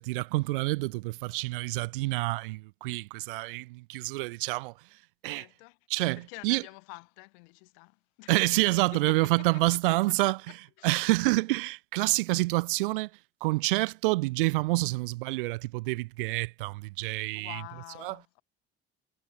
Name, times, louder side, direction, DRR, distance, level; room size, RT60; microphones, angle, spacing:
voice 1, 0.0-4.7 5.2-5.4 5.9-6.6 8.3-10.4 10.8-13.1 13.4-17.6 18.0-18.2, right 22 dB, 65° right, 0.5 m, -28 dB
voice 2, 5.3-5.8 6.2-8.4 8.9-10.0 10.3-11.1 17.3-18.4, left 35 dB, 65° left, 3.0 m, -48 dB
figure-of-eight pair, 55°, 29 cm